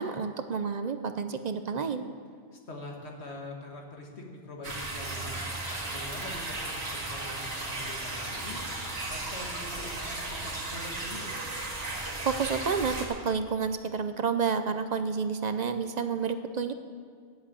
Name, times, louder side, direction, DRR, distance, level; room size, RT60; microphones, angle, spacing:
voice 1, 0.0-2.0 12.2-16.7, right 5 dB, 50° right, 9 dB, 0.6 m, -30 dB
voice 2, 2.5-5.5 5.9-8.6 9.1-11.3, left 2 dB, 80° left, 1 dB, 1.9 m, -43 dB
sound 1, 4.6-13.1, right 2 dB, 70° right, 2.1 m, -35 dB
10.5 x 7.9 x 8.5 m, 2.1 s
omnidirectional pair, 1.1 m